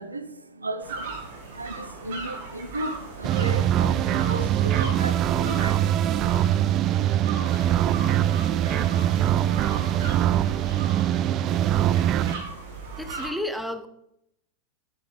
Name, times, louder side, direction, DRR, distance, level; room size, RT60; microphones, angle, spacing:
voice 1, 0.0-6.5, right 1 dB, 80° right, 0.7 m, -36 dB
sound 1, 0.8-13.3, right 4 dB, 55° right, 2.4 m, -38 dB
sound 2, 3.2-12.3, right 11 dB, 35° right, 0.5 m, -23 dB
voice 2, 13.0-13.9, left 1 dB, ahead, 0.8 m, -31 dB
11.0 x 8.8 x 3.3 m
figure-of-eight pair, 90°, 0 cm